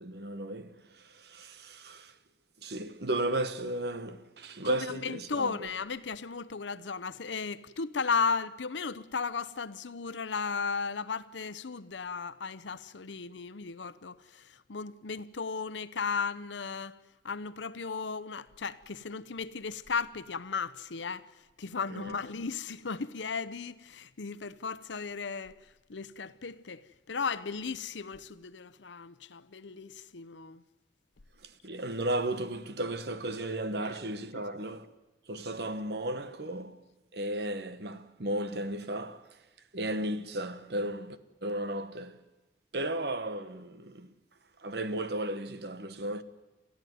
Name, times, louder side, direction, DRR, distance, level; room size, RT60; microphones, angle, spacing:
voice 1, 0.0-2.1 2.6-5.7 21.9-22.1 31.4-34.9 35.3-36.8 37.1-39.3 39.7-42.2 42.7-44.1 44.6-46.2, right 1 dB, 65° right, 1.1 m, -35 dB
voice 2, 4.7-17.0 17.2-25.6 25.9-30.6 33.8-33.9, left 5 dB, 85° left, 0.8 m, -35 dB
29.5 x 13.5 x 9.4 m
head